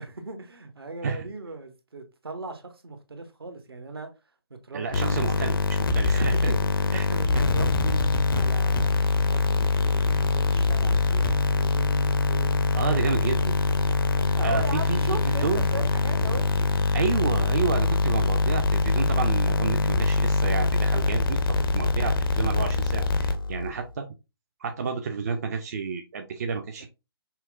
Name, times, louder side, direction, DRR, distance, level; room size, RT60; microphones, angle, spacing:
voice 1, 0.0-4.1 4.5-5.3 6.1-9.0 9.3-13.3 14.1-16.4 16.8-16.9 21.0-21.2 26.8-26.9, right 3 dB, 70° right, 0.8 m, -38 dB
voice 2, 4.7-6.5 6.9-7.1 12.7-13.5 14.2-15.7 16.9-21.4 21.7-24.1 24.6-26.9, right 5 dB, 40° right, 0.4 m, -30 dB
sound 1, 4.9-23.7, left 3 dB, 60° left, 0.6 m, -23 dB
5.6 x 2.1 x 2.4 m
figure-of-eight pair, 135°, 13 cm